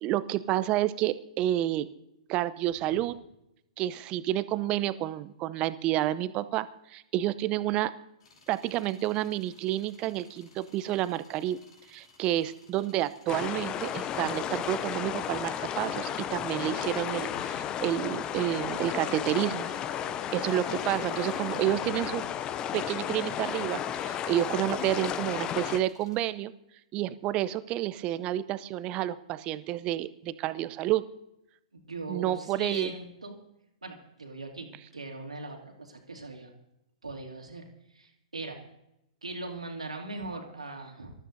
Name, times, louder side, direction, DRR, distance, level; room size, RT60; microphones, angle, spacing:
voice 1, 0.0-1.9 2.3-3.2 3.8-7.9 8.5-11.6 11.9-19.7 20.3-22.2 22.7-26.5 26.9-31.0 32.1-32.9, right 14 dB, 30° right, 14 dB, 0.6 m, -30 dB
sound 1, 8.2-26.2, left 3 dB, 55° left, 4.5 m, -60 dB
sound 2, 13.3-25.8, left 10 dB, 25° left, 0.5 m, -33 dB
sound 3, 13.8-22.7, left 1 dB, 85° left, 2.5 m, -52 dB
voice 2, 31.7-33.4 33.8-36.5 37.0-38.6 39.2-41.1, right 2 dB, 85° right, 2 dB, 2.6 m, -40 dB
25.5 x 13.5 x 2.7 m, 0.84 s
figure-of-eight pair, 115°, 3 cm